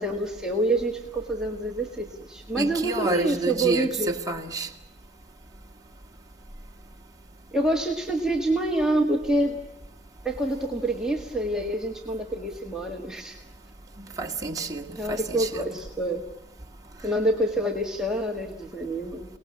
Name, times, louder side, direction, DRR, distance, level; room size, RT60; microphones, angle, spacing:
voice 1, 0.0-4.1 7.5-9.6 10.3-13.4 15.0-16.3 17.0-19.2, right 1 dB, 5° right, 1.7 m, -27 dB
voice 2, 2.6-4.7 14.2-15.6, right 2 dB, 20° right, 2.1 m, -29 dB
29.0 x 19.5 x 8.5 m
head